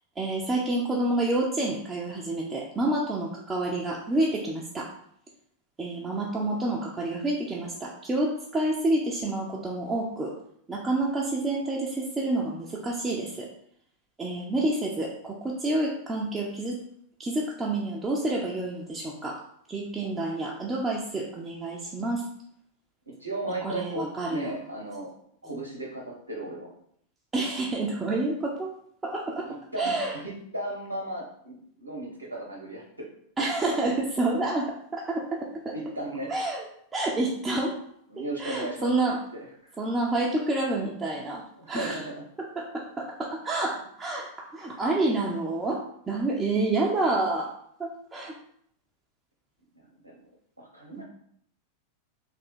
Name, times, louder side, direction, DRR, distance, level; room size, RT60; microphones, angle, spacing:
voice 1, 0.2-4.9 5.8-10.3 10.7-13.5 14.2-16.8 17.2-19.4 19.7-22.2 23.6-24.5 27.3-28.7 29.0-29.5 29.8-30.1 33.4-34.7 34.9-35.4 35.6-35.7 36.3-36.6 36.9-37.7 38.2-39.2 39.8-41.4 41.7-42.0 42.6-47.5 47.8-48.3 51.0-51.1, right 2 dB, 15° right, -3 dB, 0.6 m, -28 dB
voice 2, 23.2-25.1 25.4-26.7 29.4-33.1 35.7-36.3 38.1-38.9 39.6-39.7 41.6-42.3 49.8-50.2 50.6-51.0, right 1 dB, 80° right, -4 dB, 0.8 m, -36 dB
3.5 x 2.7 x 4.2 m, 0.68 s
figure-of-eight pair, 90°, 0 cm